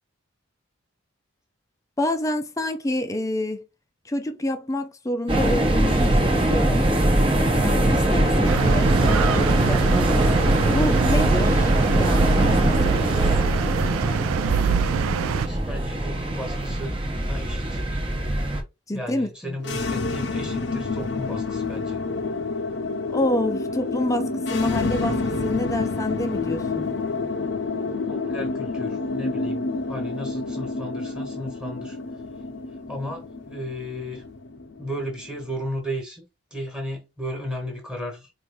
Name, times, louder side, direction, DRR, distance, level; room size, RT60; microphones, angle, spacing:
voice 1, 2.0-3.6 4.0-6.9 7.6-13.2 18.9-19.6 23.1-26.9, left 1 dB, 15° left, 0.5 m, -28 dB
sound 1, 5.3-18.6, right 1 dB, 25° right, 1.0 m, -21 dB
sound 2, 8.4-15.5, right 8 dB, 85° right, 0.3 m, -25 dB
voice 2, 15.2-17.0 17.2-17.8 18.9-22.0 28.1-32.0 32.9-34.2 34.8-36.2 36.5-38.3, equal, 5° right, 1.4 m, -34 dB
sound 3, 19.6-35.6, left 3 dB, 55° left, 0.6 m, -28 dB
4.6 x 2.6 x 3.5 m
head